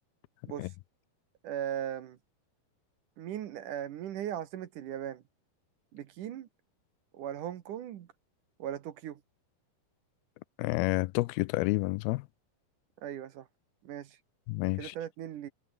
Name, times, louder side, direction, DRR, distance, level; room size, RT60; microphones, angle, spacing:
voice 1, 1.4-2.2 3.2-5.2 5.9-6.5 7.1-8.1 8.6-9.2 13.0-13.5 13.8-14.2 14.8-15.5, right 10 dB, 65° right, 2.5 m, -38 dB
voice 2, 10.6-12.3 14.5-15.0, left 22 dB, 85° left, 2.4 m, -29 dB
omnidirectional pair, 4.4 m